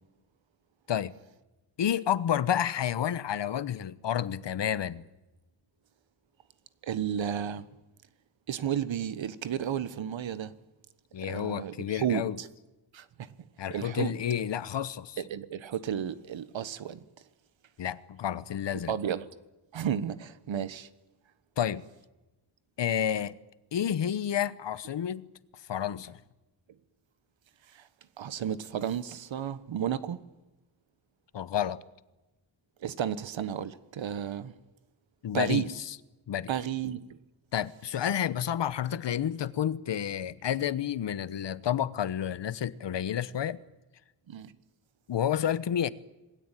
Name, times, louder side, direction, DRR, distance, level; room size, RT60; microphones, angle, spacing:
voice 1, 1.8-5.0 11.1-12.4 13.6-15.2 17.8-18.9 21.6-21.8 22.8-23.3 23.7-25.3 25.7-26.2 31.3-31.8 35.2-36.0 36.3-36.5 37.5-43.6 45.1-45.9, left 9 dB, 60° left, 1.1 m, -30 dB
voice 2, 6.8-7.7 8.5-10.5 11.2-12.5 12.9-13.3 13.7-14.1 15.2-17.0 18.9-19.3 19.7-20.9 27.7-27.9 28.2-30.2 32.8-34.5 35.3-35.7 36.5-37.0 44.3-44.5, right 9 dB, 70° right, 1.4 m, -32 dB
27.0 x 20.0 x 9.2 m
wide cardioid pair, 165°, 48 cm